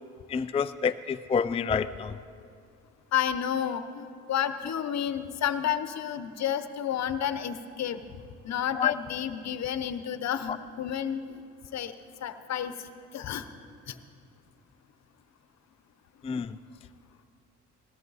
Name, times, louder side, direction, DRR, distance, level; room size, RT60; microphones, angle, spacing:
voice 1, 0.3-2.2 8.8-8.9 16.2-16.5, left 6 dB, 20° left, 10 dB, 0.3 m, -28 dB
voice 2, 3.1-8.0 8.4-11.2 11.7-11.9 12.2-12.7 13.1-13.5 13.9-14.0, left 9 dB, 60° left, 11 dB, 0.9 m, -30 dB
19.0 x 16.0 x 4.1 m, 2.4 s
cardioid pair, 90°, 30 cm